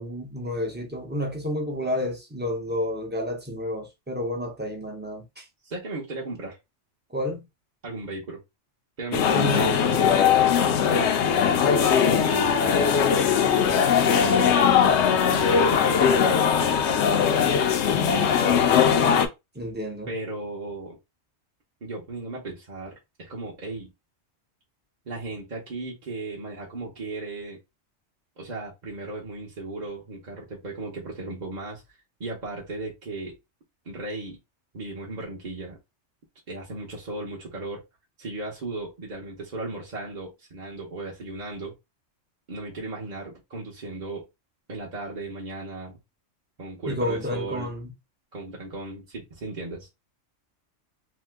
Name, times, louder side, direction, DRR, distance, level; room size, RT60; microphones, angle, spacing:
voice 1, 0.0-5.5 7.1-7.4 9.3-10.1 19.5-20.1 46.8-47.9, left 1 dB, 10° right, 0.6 m, -30 dB
voice 2, 5.6-6.6 7.8-8.4 9.0-9.8 10.5-13.7 14.2-14.5 15.3-16.6 18.1-18.7 20.1-21.0 21.8-23.9 25.1-27.6 28.4-31.8 32.2-33.4 33.8-34.4 34.7-35.8 36.5-37.8 38.2-41.7 42.5-44.3 44.7-46.0 46.6-47.7 48.3-49.9, right 2 dB, 40° right, 0.9 m, -36 dB
sound 1, 9.1-19.3, left 7 dB, 70° left, 0.8 m, -20 dB
2.9 x 2.2 x 3.3 m
omnidirectional pair, 1.3 m